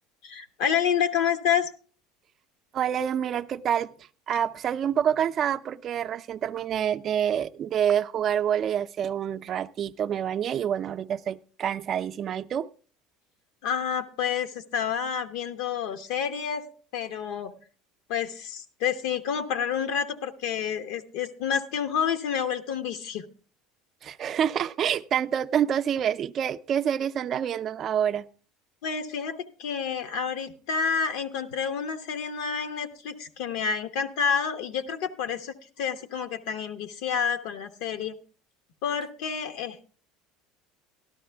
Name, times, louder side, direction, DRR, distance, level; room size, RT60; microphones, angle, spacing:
voice 1, 0.2-1.7 13.6-16.6 16.9-17.5 18.1-23.3 28.8-38.1 38.8-39.8, left 7 dB, 75° left, 8 dB, 0.9 m, -29 dB
voice 2, 2.7-3.9 4.3-12.7 24.0-28.2, right 9 dB, 40° right, 10 dB, 0.4 m, -27 dB
13.0 x 12.0 x 3.4 m, 0.40 s
supercardioid pair, 120°, 0 cm